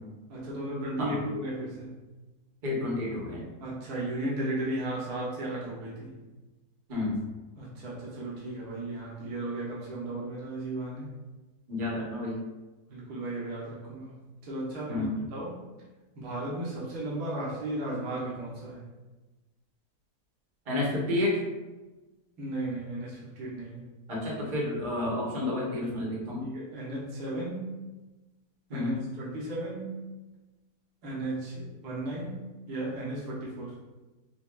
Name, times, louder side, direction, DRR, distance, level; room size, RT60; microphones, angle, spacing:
voice 1, 0.3-2.0 3.6-6.2 7.6-11.1 12.9-15.6 16.2-18.8 22.4-23.9 26.4-27.8 28.7-30.0 31.0-33.8, right 1 dB, 80° right, -6 dB, 1.5 m, -35 dB
voice 2, 2.6-3.5 6.9-7.2 11.7-12.4 14.9-15.1 20.7-21.4 24.1-26.4 28.7-29.0, left 2 dB, 40° right, -4 dB, 1.0 m, -30 dB
5.3 x 2.3 x 2.3 m, 1.2 s
omnidirectional pair, 1.7 m